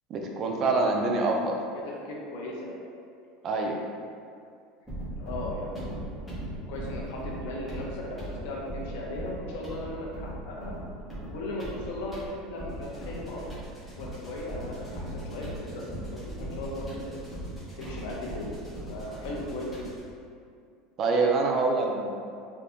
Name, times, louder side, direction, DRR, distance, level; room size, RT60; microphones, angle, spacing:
voice 1, 0.1-1.6 3.4-3.8 21.0-22.1, right 3 dB, 30° right, 1 dB, 0.3 m, -25 dB
voice 2, 1.8-2.8 5.2-6.3 6.7-10.7 11.3-13.5 13.9-15.8 16.2-17.1 17.8-18.6 18.9-19.9, left 1 dB, 70° left, -2 dB, 0.6 m, -37 dB
sound 1, 4.9-20.1, right 1 dB, 5° left, 0.7 m, -39 dB
3.4 x 2.6 x 2.5 m, 2.3 s
cardioid pair, 160°, 0 cm